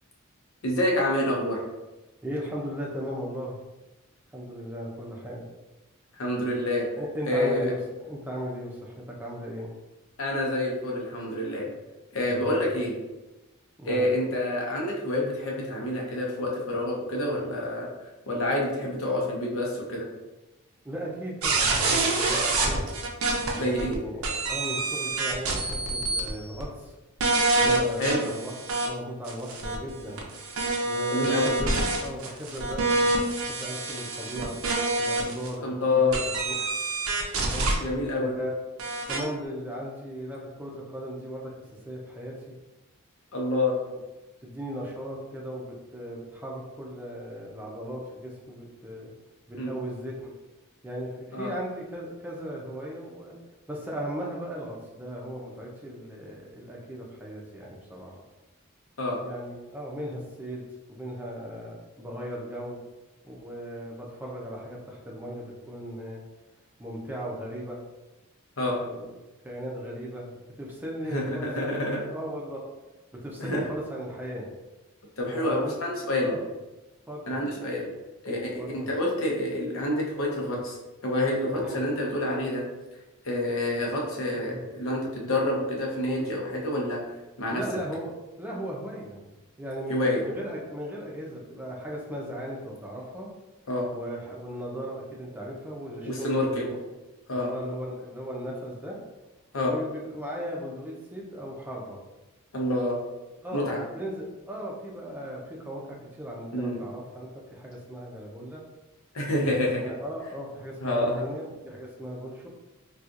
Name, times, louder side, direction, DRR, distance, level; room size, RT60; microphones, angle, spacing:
voice 1, 0.6-1.6 6.2-6.9 7.3-7.7 10.2-11.7 12.1-13.0 13.9-17.9 18.3-20.1 23.5-24.0 28.0-28.3 31.1-31.5 35.6-36.1 37.8-38.3 43.3-43.7 49.6-49.7 51.3-51.5 59.0-59.2 68.6-68.7 71.1-72.1 73.4-73.6 75.2-76.4 77.3-77.9 78.2-80.8 81.0-82.6 83.2-87.6 89.9-90.2 93.7-93.9 96.0-96.7 97.3-97.5 99.5-99.7 102.5-103.0 103.5-103.9 106.5-106.8 109.1-109.8 110.8-111.2, left 1 dB, 70° left, -2 dB, 0.8 m, -27 dB
voice 2, 2.2-3.6 4.3-5.4 7.0-9.7 12.3-12.8 13.8-14.1 18.8-18.9 20.8-22.9 23.6-27.0 27.5-30.2 30.9-31.7 32.0-34.6 35.0-36.7 37.4-37.7 38.1-38.5 39.1-41.5 41.8-42.5 43.9-44.0 44.4-49.1 49.5-50.4 50.8-53.4 53.7-58.1 59.2-60.6 60.9-62.8 63.2-66.2 66.8-67.8 68.7-69.1 69.4-72.6 73.1-74.5 75.3-75.7 76.2-76.5 77.1-77.4 78.6-78.9 81.5-81.8 84.3-84.7 86.2-86.3 87.5-88.1 88.4-89.2 89.6-93.3 93.9-96.8 97.3-99.0 99.6-102.0 103.4-108.6 109.5-112.5, equal, 10° right, -3 dB, 0.6 m, -37 dB
sound 1, 21.4-23.9 24.2-26.3 26.6-26.7 27.2-28.9 29.3-35.5 36.1-37.8 38.8-39.2, right 2 dB, 75° right, 0.6 m, -27 dB
4.2 x 2.4 x 2.5 m, 1.1 s
head